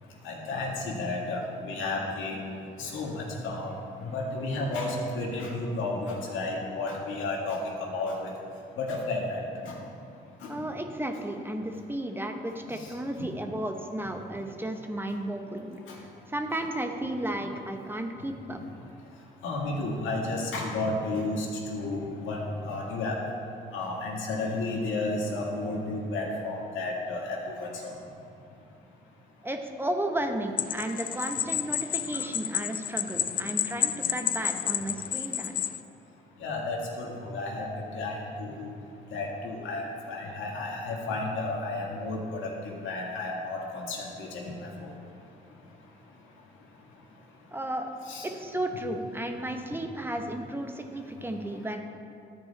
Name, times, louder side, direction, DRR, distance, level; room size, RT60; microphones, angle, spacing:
voice 1, 0.2-2.4 2.8-3.7 4.0-8.3 8.8-9.8 10.4-10.6 12.8-12.9 15.9-16.0 19.4-22.4 22.6-23.2 23.7-27.9 36.4-37.6 37.9-38.7 39.1-44.9 48.1-48.3, left 2 dB, 80° left, -2 dB, 1.8 m, -32 dB
voice 2, 10.5-18.6 29.4-35.5 47.5-47.9 48.2-51.8, right 1 dB, 10° right, 5 dB, 0.8 m, -33 dB
sound 1, 30.6-35.8, left 10 dB, 45° left, 0.4 m, -30 dB
13.5 x 4.7 x 4.1 m, 2.6 s
cardioid pair, 90°, 20 cm